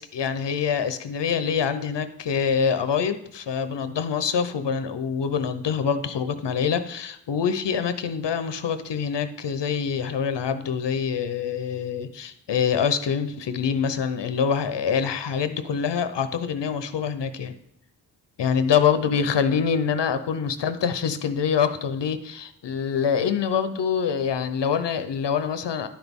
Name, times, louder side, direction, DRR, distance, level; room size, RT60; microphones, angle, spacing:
voice 1, 0.0-17.5 18.4-25.9, left 7 dB, 85° left, 10 dB, 0.7 m, -25 dB
11.5 x 6.0 x 3.6 m, 0.76 s
wide cardioid pair, 85°, 41 cm